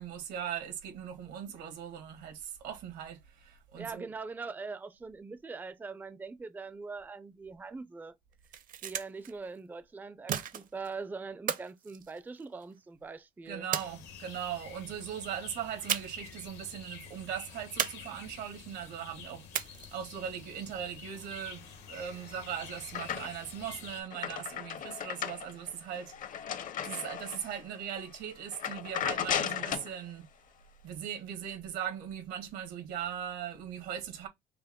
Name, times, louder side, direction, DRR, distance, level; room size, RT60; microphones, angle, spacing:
voice 1, 0.0-4.1 13.4-26.1 26.8-30.3 30.8-34.3, right 9 dB, 85° right, 1.6 m, -39 dB
voice 2, 3.8-8.2 8.8-13.7, right 4 dB, 10° right, 0.4 m, -42 dB
sound 1, 8.3-9.3 10.3-10.9 11.5-12.7 13.7-14.5 15.9-16.4 16.6-16.7 17.8-18.5 19.5-20.1, right 9 dB, 55° right, 0.7 m, -35 dB
sound 2, 13.8-24.0, left 7 dB, 85° left, 1.4 m, -49 dB
sound 3, 22.0-23.6 23.9-27.6 28.0-28.2 28.5-29.9, left 9 dB, 50° left, 0.7 m, -36 dB
5.7 x 2.2 x 3.6 m
cardioid pair, 110°, 17 cm